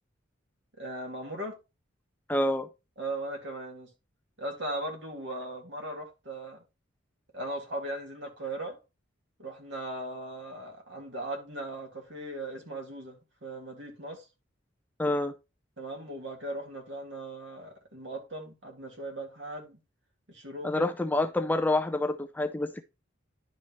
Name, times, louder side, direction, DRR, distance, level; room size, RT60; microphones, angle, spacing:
voice 1, 0.8-1.6 3.0-3.9 4.4-6.6 7.3-8.8 9.4-14.3 15.8-19.8 20.3-20.9, right 1 dB, 65° right, 2.2 m, -38 dB
voice 2, 2.3-2.7 15.0-15.3 20.6-22.8, left 2 dB, 10° left, 0.4 m, -27 dB
10.5 x 5.5 x 3.0 m
head